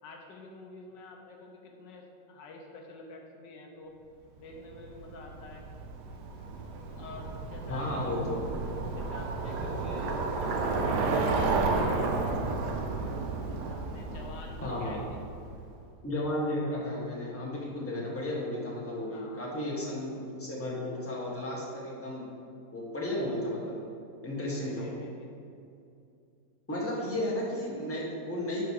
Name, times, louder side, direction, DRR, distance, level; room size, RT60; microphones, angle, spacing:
voice 1, 0.0-3.9 4.4-5.6 6.9-8.2 8.9-10.2 10.8-12.3 13.7-15.2 19.0-19.5 24.4-25.3, left 3 dB, 75° left, 1 dB, 1.5 m, -48 dB
Bicycle, 4.7-15.6, right 3 dB, 70° right, 1.4 m, -32 dB
voice 2, 7.7-8.6 14.6-15.0 16.0-22.3 22.7-23.7 24.2-25.0 26.7-28.7, left 1 dB, 10° left, -5 dB, 1.5 m, -33 dB
11.5 x 4.7 x 4.8 m, 2.5 s
omnidirectional pair, 2.0 m